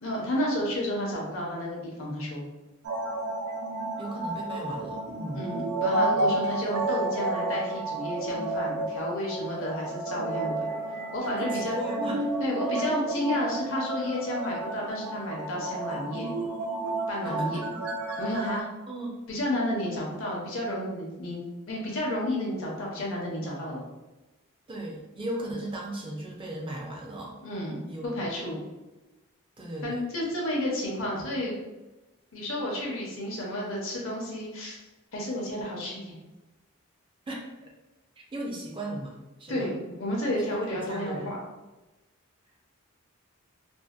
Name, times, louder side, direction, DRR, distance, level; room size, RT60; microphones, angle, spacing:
voice 1, 0.0-2.5 5.3-10.7 11.1-11.8 12.4-16.3 17.1-17.6 18.2-18.7 19.3-21.4 21.7-23.8 27.4-28.6 29.8-31.6 32.3-34.8 35.1-36.1 39.5-41.4, left 1 dB, 65° left, -2 dB, 0.7 m, -31 dB
sound 1, 2.8-18.6, right 2 dB, 90° right, 0.5 m, -31 dB
voice 2, 4.0-5.5 6.1-6.3 11.3-12.2 17.2-17.8 18.9-19.2 24.7-27.4 27.9-28.3 29.6-30.0 37.3-37.7 38.2-39.6 40.3-41.3, right 1 dB, 25° right, -2 dB, 0.4 m, -37 dB
2.6 x 2.0 x 2.3 m, 1.1 s
head